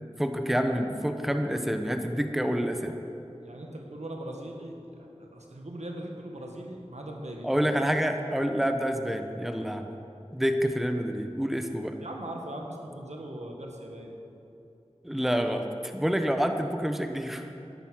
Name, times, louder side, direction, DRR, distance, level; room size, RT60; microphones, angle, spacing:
voice 1, 0.2-3.0 7.4-9.9 10.3-11.9 15.0-17.5, equal, ahead, 5 dB, 0.9 m, -28 dB
voice 2, 3.4-7.8 12.0-14.2, right 1 dB, 85° right, 0 dB, 1.7 m, -40 dB
13.0 x 9.6 x 6.4 m, 2.9 s
wide cardioid pair, 45°, 11 cm